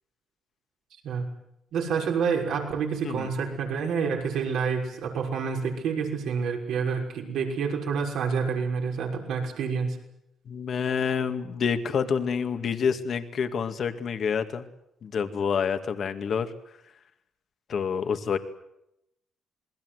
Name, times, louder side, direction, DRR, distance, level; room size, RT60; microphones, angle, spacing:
voice 1, 1.7-10.0, right 6 dB, 80° right, 1 dB, 6.1 m, -28 dB
voice 2, 10.5-14.7 15.0-16.5 17.7-18.4, left 6 dB, 55° left, 8 dB, 2.2 m, -28 dB
28.0 x 20.5 x 8.1 m, 0.82 s
cardioid pair, 90°, 0 cm